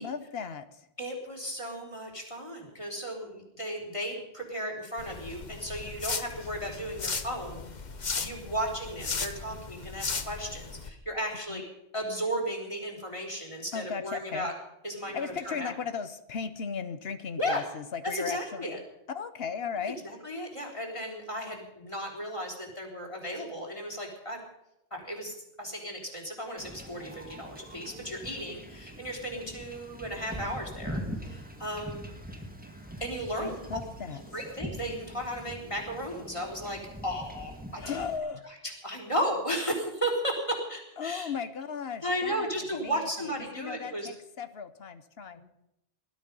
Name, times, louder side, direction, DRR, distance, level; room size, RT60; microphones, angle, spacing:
voice 1, 0.0-0.9 11.5-11.6 13.7-14.5 15.0-18.8 19.1-20.0 33.4-34.2 37.8-38.4 41.0-42.5 42.8-45.4, left 6 dB, 75° left, 11 dB, 1.1 m, -36 dB
voice 2, 1.0-7.7 8.2-11.7 11.9-14.5 14.8-15.7 17.4-17.6 18.0-18.8 19.9-24.4 24.9-32.0 33.0-33.6 34.3-38.0 38.6-41.3 42.0-44.1 45.4-45.5, equal, 30° left, 2 dB, 4.1 m, -35 dB
sound 1, 5.0-10.9, left 4 dB, 45° left, 1.2 m, -36 dB
Wind / Ocean / Boat Water vehicle, 26.6-38.2, equal, 10° right, 2.0 m, -43 dB
20.0 x 12.5 x 5.4 m, 0.86 s
omnidirectional pair, 1.1 m